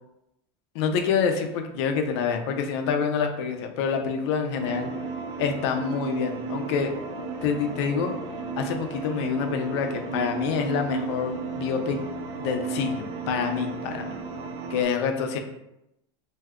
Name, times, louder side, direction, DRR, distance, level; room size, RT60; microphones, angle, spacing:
voice 1, 0.7-4.9 5.4-6.9 7.4-8.1 8.6-12.0 12.4-14.1 14.7-15.4, left 6 dB, 70° left, 5 dB, 0.5 m, -27 dB
sound 1, 4.6-14.8, right 4 dB, 85° right, 0.5 m, -34 dB
2.6 x 2.3 x 3.5 m, 0.86 s
supercardioid pair, 145°, 15 cm